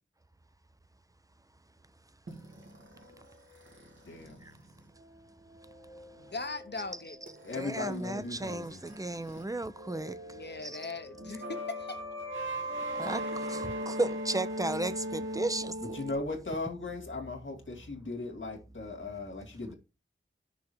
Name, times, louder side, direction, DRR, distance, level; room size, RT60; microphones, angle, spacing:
sound 1, 2.3-9.4 9.7-16.1, equal, 75° right, 2.3 m, -40 dB
voice 1, 4.0-4.4 7.4-8.8 15.8-19.7, left 3 dB, 75° left, 2.1 m, -38 dB
voice 2, 6.2-7.2 10.2-12.0 13.2-13.4, left 3 dB, 60° left, 1.0 m, -40 dB
voice 3, 7.6-10.8 13.0-15.8, right 2 dB, 15° right, 0.6 m, -34 dB
6.2 x 3.7 x 6.1 m
wide cardioid pair, 60°, 20 cm